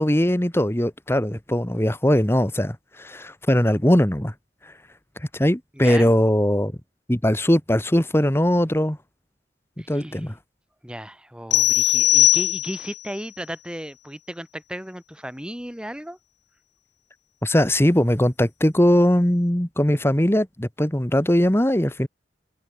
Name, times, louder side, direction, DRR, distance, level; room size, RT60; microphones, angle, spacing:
voice 1, 0.0-4.3 5.3-6.7 7.1-9.0 9.9-10.3 17.4-22.1, equal, 15° left, 1.5 m, -20 dB
voice 2, 5.7-6.1 9.8-10.3 10.8-16.2, equal, 5° right, 8.0 m, -35 dB
sound 1, 11.5-13.0, left 14 dB, 85° left, 2.7 m, -19 dB
head